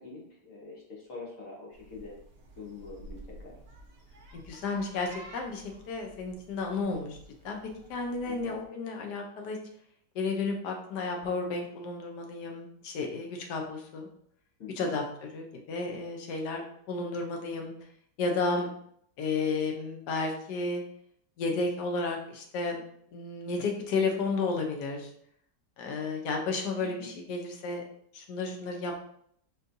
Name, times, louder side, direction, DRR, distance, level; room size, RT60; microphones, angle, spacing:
voice 1, 0.0-2.1 2.6-3.6 8.2-8.5 14.6-14.9 26.8-27.1, left 4 dB, 55° left, -4 dB, 1.4 m, -44 dB
sound 1, 1.7-8.6, right 1 dB, 55° right, 0.7 m, -51 dB
voice 2, 4.3-7.2 7.4-7.6 7.9-9.6 10.1-14.1 14.7-17.7 18.2-18.7 19.2-20.8 21.4-22.8 23.1-25.1 25.8-27.8 28.1-29.0, left 3 dB, 75° left, 2 dB, 1.3 m, -32 dB
4.4 x 3.1 x 2.6 m, 0.67 s
omnidirectional pair, 1.9 m